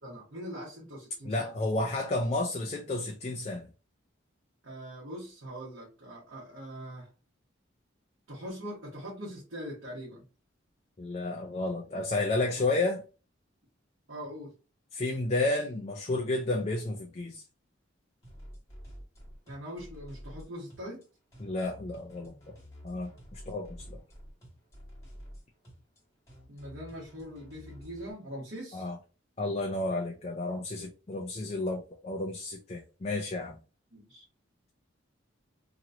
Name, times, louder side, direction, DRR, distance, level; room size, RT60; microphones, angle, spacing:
voice 1, 0.0-1.6 4.6-7.1 8.3-10.2 14.1-14.5 19.5-21.0 26.5-28.9 33.9-34.2, equal, 70° right, 1.3 m, -42 dB
voice 2, 1.2-3.7 11.0-13.0 14.9-17.4 21.4-22.5 22.8-24.0 28.7-29.0 29.4-33.6, left 2 dB, 30° left, 0.4 m, -31 dB
sound 1, 18.2-28.1, equal, 15° left, 1.8 m, -49 dB
3.0 x 2.9 x 2.5 m
head